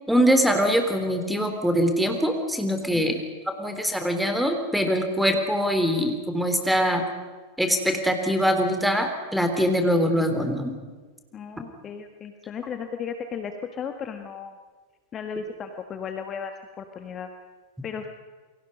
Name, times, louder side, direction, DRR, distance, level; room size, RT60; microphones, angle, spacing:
voice 1, 0.1-3.1 3.6-7.0 7.6-10.7, equal, ahead, 6 dB, 3.5 m, -23 dB
voice 2, 11.3-14.5 15.1-16.5 16.8-17.3 17.8-18.1, left 6 dB, 25° left, 6 dB, 1.6 m, -35 dB
29.0 x 23.5 x 5.4 m, 1.3 s
figure-of-eight pair, 90°, 0 cm